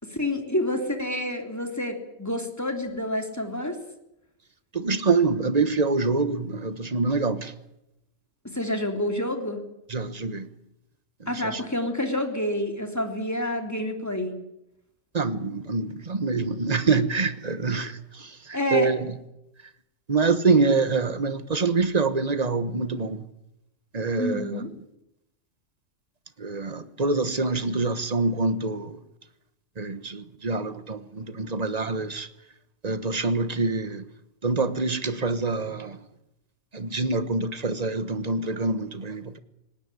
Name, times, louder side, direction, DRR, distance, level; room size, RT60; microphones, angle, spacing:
voice 1, 0.0-3.8 8.4-9.6 11.3-14.3 18.5-18.9 24.2-24.7, left 1 dB, 10° left, 3.3 m, -28 dB
voice 2, 4.7-7.5 9.9-10.5 11.5-11.6 15.1-18.3 18.7-19.0 20.1-23.2 23.9-24.5 26.4-29.0 29.8-32.3 32.8-34.0 34.4-36.0 36.7-39.4, right 3 dB, 30° right, 1.4 m, -25 dB
19.0 x 18.0 x 9.9 m
omnidirectional pair, 1.3 m